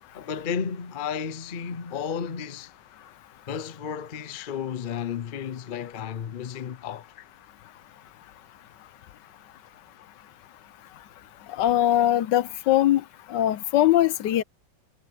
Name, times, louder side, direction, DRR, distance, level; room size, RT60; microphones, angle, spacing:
voice 1, 0.1-2.7 3.5-7.1, left 7 dB, 55° left, 0.5 m, -33 dB
voice 2, 11.6-13.0 13.3-14.4, left 13 dB, 75° left, 1.3 m, -21 dB
omnidirectional pair, 2.0 m